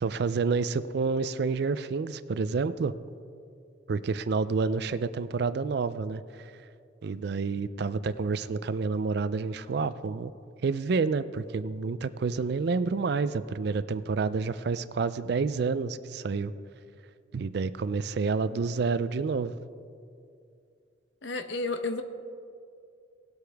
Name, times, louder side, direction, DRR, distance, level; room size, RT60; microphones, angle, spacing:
voice 1, 0.0-2.9 3.9-6.2 7.0-10.3 10.6-16.5 17.3-19.5, right 4 dB, 60° right, 14 dB, 0.4 m, -29 dB
voice 2, 21.2-22.0, left 3 dB, 80° left, 9 dB, 0.8 m, -31 dB
18.5 x 8.0 x 3.4 m, 2.4 s
head